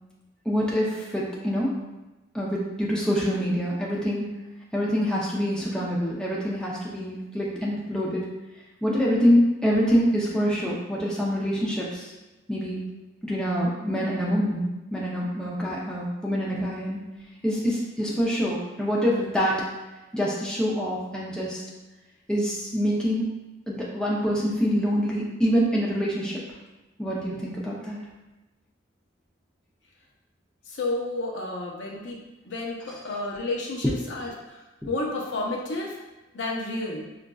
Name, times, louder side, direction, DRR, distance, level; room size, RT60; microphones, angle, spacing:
voice 1, 0.5-1.8 2.3-4.3 4.7-8.3 8.8-12.1 12.5-12.9 13.2-14.6 14.9-17.0 17.4-19.6 20.1-21.6 22.3-23.2 23.7-26.4 27.0-28.0 34.1-34.2, equal, 5° left, -5 dB, 0.5 m, -25 dB
voice 2, 30.7-36.0 36.3-37.1, left 2 dB, 70° left, -2 dB, 0.7 m, -31 dB
5.0 x 2.4 x 2.3 m, 1.1 s
head